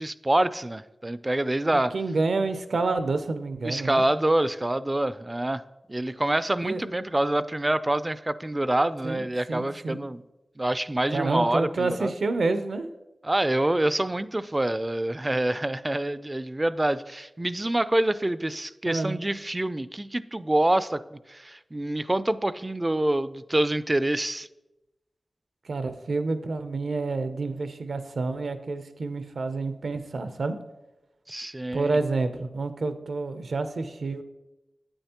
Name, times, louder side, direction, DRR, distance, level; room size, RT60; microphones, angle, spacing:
voice 1, 0.0-1.9 3.6-5.6 5.9-10.2 10.6-12.1 13.2-24.5 31.3-32.0, right 1 dB, 25° right, 15 dB, 0.3 m, -26 dB
voice 2, 1.7-4.1 6.6-6.8 9.0-10.0 11.1-12.9 18.9-19.2 25.6-30.6 31.7-34.2, right 3 dB, 75° right, 10 dB, 0.6 m, -28 dB
9.0 x 8.9 x 2.9 m, 1.0 s
cardioid pair, 55°, 0 cm